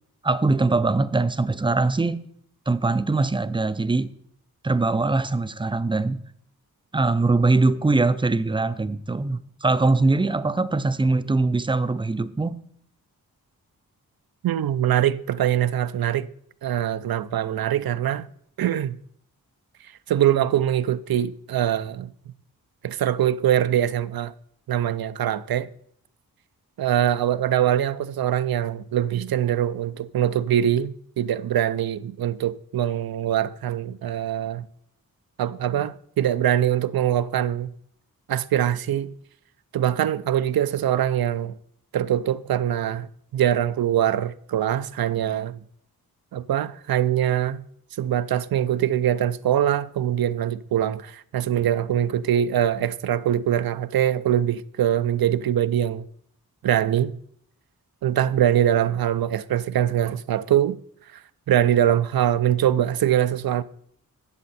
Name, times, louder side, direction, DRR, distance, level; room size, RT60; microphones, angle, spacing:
voice 1, 0.2-2.2 2.7-4.1 4.6-6.2 6.9-12.6, right 3 dB, 15° right, 0.4 m, -22 dB
voice 2, 14.4-16.3 16.6-18.3 18.6-19.0 20.1-22.1 22.8-24.3 24.7-25.7 26.8-34.7 35.4-37.7 38.3-39.1 39.7-41.5 41.9-45.6 46.3-47.6 48.0-56.1 56.6-57.2 58.0-60.8 61.1-61.2 61.5-63.6, right 11 dB, 70° right, 0.5 m, -23 dB
12.0 x 7.5 x 4.2 m
wide cardioid pair, 95°, 37 cm